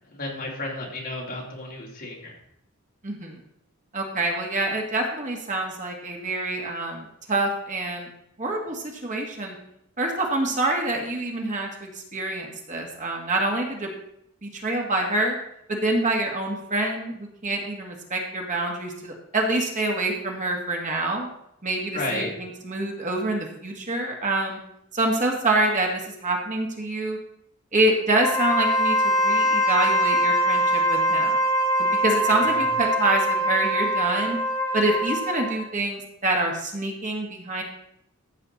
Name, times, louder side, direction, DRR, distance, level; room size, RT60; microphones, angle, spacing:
voice 1, 0.1-2.3 21.9-22.3 32.3-32.6, left 2 dB, 45° left, -3 dB, 3.3 m, -32 dB
voice 2, 3.0-3.4 3.9-8.1 8.4-9.6 10.0-13.9 14.4-15.4 15.7-21.3 21.6-24.6 24.9-27.2 27.7-31.3 31.8-34.4 34.7-37.6, right 2 dB, 35° right, 0 dB, 1.9 m, -26 dB
Wind instrument woodwind instrument, 28.1-35.6, equal, 15° left, 4.7 m, -23 dB
14.5 x 7.5 x 4.1 m, 0.77 s
head